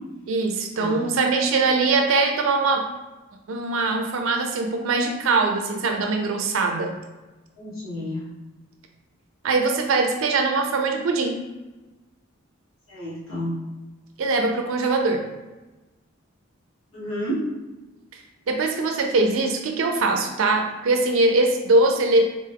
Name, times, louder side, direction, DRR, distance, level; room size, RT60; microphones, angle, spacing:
voice 1, 0.3-2.9 3.5-7.0 9.4-11.4 14.2-15.3 18.5-22.2, right 3 dB, 70° right, 4 dB, 0.4 m, -22 dB
voice 2, 7.6-8.3 12.9-13.6 16.9-17.5, equal, 90° left, -8 dB, 1.5 m, -30 dB
4.0 x 2.2 x 3.4 m, 1.1 s
head